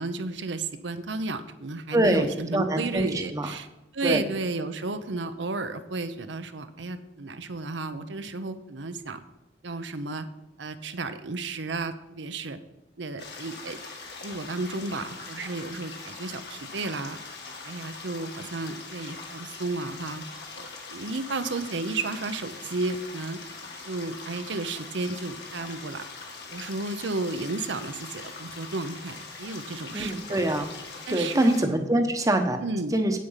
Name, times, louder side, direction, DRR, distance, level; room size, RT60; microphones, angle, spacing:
voice 1, 0.0-3.7 3.9-9.2 9.6-10.3 10.6-12.6 13.0-13.8 14.2-17.2 17.6-20.2 20.5-23.4 23.9-26.0 26.5-30.4 31.1-31.5 32.6-33.0, right 3 dB, 75° right, 10 dB, 0.8 m, -33 dB
voice 2, 1.9-3.5 4.0-4.2 29.9-30.7 31.1-32.6 32.9-33.2, right 1 dB, 20° right, 6 dB, 0.9 m, -24 dB
sound 1, 13.2-31.6, left 4 dB, 60° left, 1.9 m, -42 dB
8.5 x 8.4 x 5.7 m, 0.98 s
head